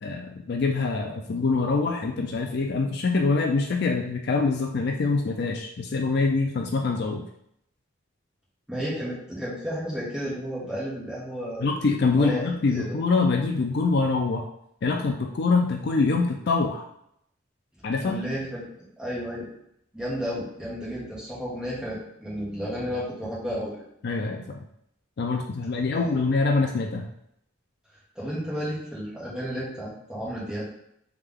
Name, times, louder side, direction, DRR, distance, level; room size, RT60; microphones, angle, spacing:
voice 1, 0.0-7.2 11.6-14.5 14.8-16.8 17.8-18.2 24.0-24.6 25.2-27.1, left 3 dB, 50° left, 2 dB, 0.4 m, -25 dB
voice 2, 8.7-11.7 12.2-13.0 18.0-18.6 19.0-19.5 19.9-23.8 25.9-26.1 28.1-30.7, equal, 5° right, -8 dB, 1.3 m, -32 dB
3.6 x 3.3 x 3.6 m, 0.74 s
head